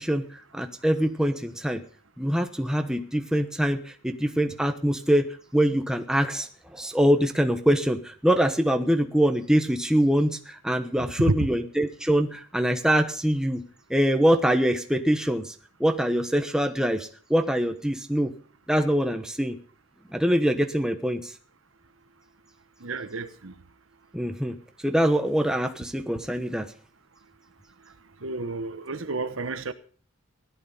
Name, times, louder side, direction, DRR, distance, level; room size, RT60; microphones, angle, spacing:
voice 1, 0.0-1.8 2.2-5.2 5.5-13.6 13.9-15.5 15.8-18.3 18.7-19.6 20.1-21.3 24.1-24.5 24.8-26.7, equal, 5° right, 1.0 m, -24 dB
voice 2, 22.8-23.5 28.2-29.7, right 3 dB, 75° right, 1.2 m, -30 dB
16.5 x 11.5 x 5.5 m
head